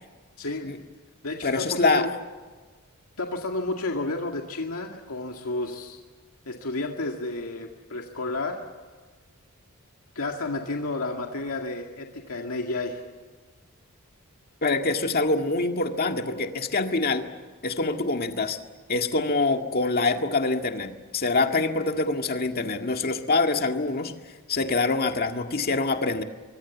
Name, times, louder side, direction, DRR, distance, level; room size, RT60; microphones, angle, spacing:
voice 1, 0.4-0.7 1.2-2.1 3.2-6.0 6.5-8.6 10.2-13.0, left 2 dB, 75° left, 2 dB, 2.1 m, -31 dB
voice 2, 1.4-2.1 14.6-17.3 17.6-18.6 18.9-24.1 24.5-26.2, left 3 dB, 45° left, 5 dB, 1.9 m, -25 dB
24.5 x 23.5 x 7.3 m, 1.4 s
head